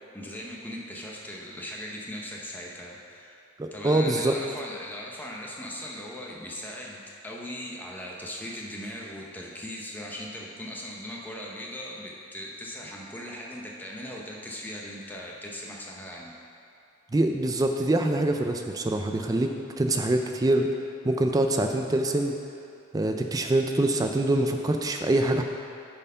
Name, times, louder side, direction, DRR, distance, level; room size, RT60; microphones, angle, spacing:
voice 1, 0.1-3.4 3.7-16.3, left 1 dB, 10° left, -2 dB, 0.8 m, -39 dB
voice 2, 3.6-4.3 17.1-20.7 21.0-22.4 22.9-25.4, right 1 dB, 15° right, 4 dB, 0.3 m, -24 dB
8.7 x 4.4 x 5.5 m, 2.6 s
head